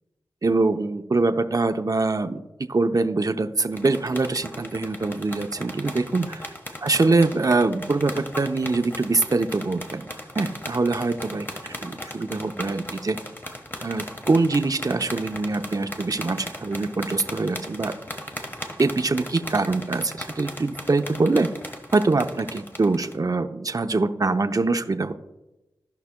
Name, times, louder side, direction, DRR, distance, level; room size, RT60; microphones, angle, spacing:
voice 1, 0.4-2.4 2.7-6.4 6.8-10.0 10.3-13.2 13.8-17.9 18.8-21.5 21.9-25.1, right 3 dB, 45° right, 7 dB, 0.7 m, -24 dB
Punches on bag, 3.7-23.2, left 1 dB, 25° left, 1.3 m, -38 dB
16.5 x 5.7 x 2.2 m, 1.0 s
cardioid pair, 45°, 8 cm